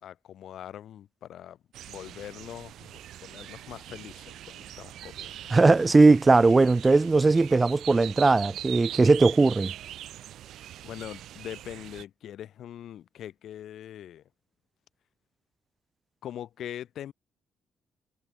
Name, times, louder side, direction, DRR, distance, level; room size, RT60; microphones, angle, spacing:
voice 1, 0.0-1.6 1.9-5.5 10.8-14.2 16.2-17.1, left 11 dB, 70° left, 2.9 m, -42 dB
sound 1, 1.7-12.0, right 12 dB, 80° right, 5.1 m, -42 dB
voice 2, 5.5-9.7, right 3 dB, 25° right, 1.0 m, -19 dB
cardioid pair, 90°, 0 cm